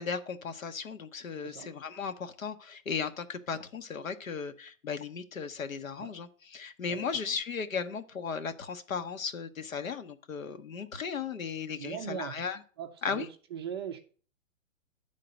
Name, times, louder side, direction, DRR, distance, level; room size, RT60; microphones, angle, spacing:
voice 1, 0.0-12.6 13.0-13.3, left 6 dB, 85° left, 8 dB, 1.1 m, -36 dB
voice 2, 6.9-7.4 11.8-12.4 12.8-14.0, right 8 dB, 20° right, 5 dB, 0.4 m, -40 dB
10.0 x 3.8 x 6.4 m, 0.40 s
hypercardioid pair, 135°, 39 cm